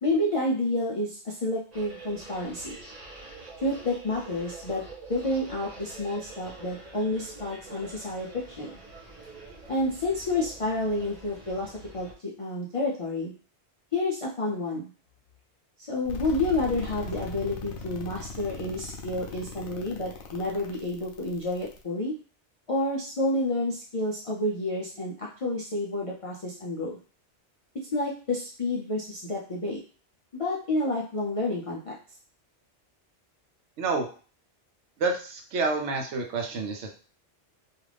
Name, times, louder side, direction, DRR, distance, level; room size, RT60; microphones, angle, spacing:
voice 1, 0.0-2.7 3.6-4.8 5.1-8.7 9.7-13.3 13.9-14.9 15.9-22.1 22.7-27.0 27.9-29.8 30.4-32.0, left 2 dB, 55° left, -4 dB, 0.3 m, -29 dB
sound 1, 1.7-12.1, right 2 dB, 35° right, 1.0 m, -46 dB
sound 2, 16.1-21.8, left 3 dB, 80° left, 0.9 m, -39 dB
voice 2, 35.0-36.9, right 3 dB, 80° right, 3 dB, 0.9 m, -28 dB
2.4 x 2.4 x 3.3 m, 0.39 s
omnidirectional pair, 1.2 m